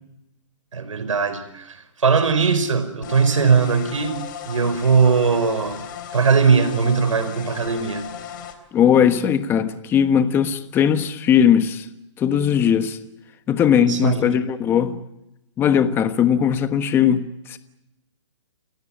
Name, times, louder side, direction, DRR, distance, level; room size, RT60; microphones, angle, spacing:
voice 1, 0.7-4.2 4.4-5.8 6.1-8.1 13.7-14.3, right 5 dB, 85° right, 5.0 m, -20 dB
sound 1, 3.0-8.6, left 9 dB, 40° left, 3.5 m, -36 dB
voice 2, 8.7-11.9 12.2-13.0 13.5-15.0 15.6-17.6, left 8 dB, 15° left, 1.3 m, -19 dB
29.5 x 17.0 x 8.8 m
hypercardioid pair, 155°, 16 cm